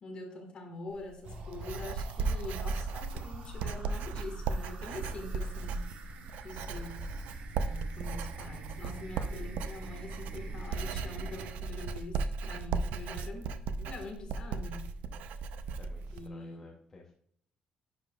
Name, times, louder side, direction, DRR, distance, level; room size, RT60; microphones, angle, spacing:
voice 1, 0.0-5.8 6.4-7.1 7.6-15.0 16.1-16.8, left 2 dB, 40° left, 3 dB, 1.7 m, -44 dB
Writing, 0.9-16.3, right 4 dB, 85° right, 0.5 m, -36 dB
sound 1, 1.2-11.5, right 2 dB, 65° right, 1.2 m, -47 dB
voice 2, 4.9-5.2 6.7-6.9 15.1-15.2 15.8-17.1, left 3 dB, 20° left, -1 dB, 0.8 m, -54 dB
10.5 x 4.9 x 2.4 m, 0.65 s
cardioid pair, 170°, 3 cm